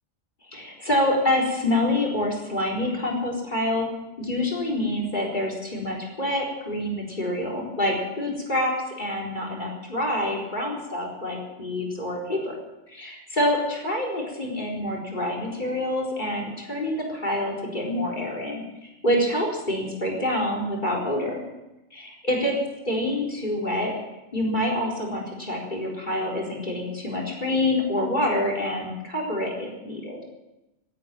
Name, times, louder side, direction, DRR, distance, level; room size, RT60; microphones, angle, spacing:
voice 1, 0.5-3.8 4.2-8.7 9.0-12.5 12.9-18.6 19.0-21.4 21.9-22.5 22.9-23.9 24.3-30.2, left 1 dB, 40° left, 0 dB, 4.4 m, -26 dB
17.0 x 9.4 x 9.1 m, 0.98 s
omnidirectional pair, 1.3 m